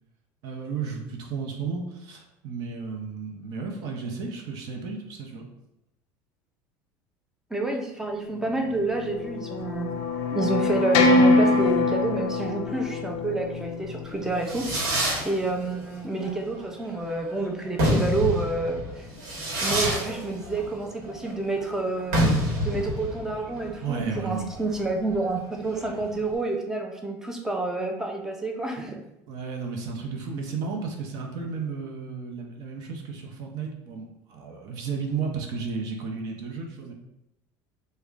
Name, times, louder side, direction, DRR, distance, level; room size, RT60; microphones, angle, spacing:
voice 1, 0.4-5.4 23.8-24.5 29.3-36.9, right 5 dB, 55° right, 1 dB, 0.7 m, -33 dB
voice 2, 7.5-9.9 10.3-14.7 15.2-19.1 19.6-22.2 22.6-29.0, right 3 dB, 5° right, 2 dB, 0.4 m, -29 dB
sound 1, 8.4-14.9, left 3 dB, 75° left, 0.4 m, -24 dB
Fireworks, 14.1-26.3, equal, 75° right, 1.2 m, -28 dB
3.6 x 2.1 x 3.5 m, 0.88 s
cardioid pair, 140°, 8 cm